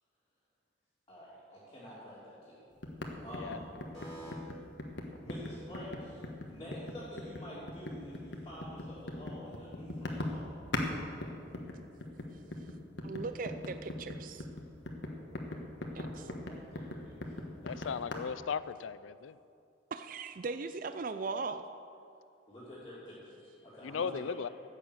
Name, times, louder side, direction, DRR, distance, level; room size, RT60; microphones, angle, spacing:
voice 1, 1.1-2.7 3.2-3.7 3.9-4.3 5.2-6.2 6.5-10.5 16.0-17.9 22.5-24.5, equal, 20° left, -10 dB, 2.8 m, -48 dB
sound 1, 2.8-10.9 11.2-18.2, left 1 dB, 60° left, 1.4 m, -40 dB
voice 2, 13.0-14.4 15.9-16.2 19.9-21.6, right 4 dB, 45° right, 9 dB, 0.4 m, -38 dB
voice 3, 17.6-19.3 23.8-24.5, left 6 dB, 85° left, 16 dB, 0.4 m, -37 dB
14.0 x 8.9 x 6.5 m, 2.5 s
head